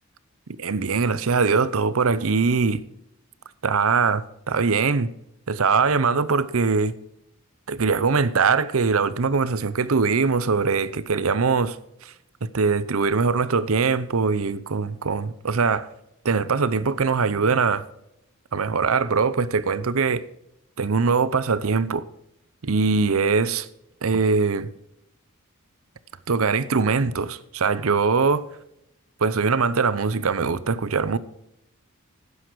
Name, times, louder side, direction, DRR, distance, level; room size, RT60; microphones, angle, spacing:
voice 1, 0.6-2.8 3.6-5.1 5.5-6.9 7.7-11.8 12.0-12.1 12.5-15.9 16.2-17.8 18.5-20.2 20.8-22.0 22.6-23.7 24.0-24.7 26.3-28.4 29.2-31.2, right 4 dB, 70° right, 0.7 m, -22 dB
11.5 x 9.8 x 4.7 m
head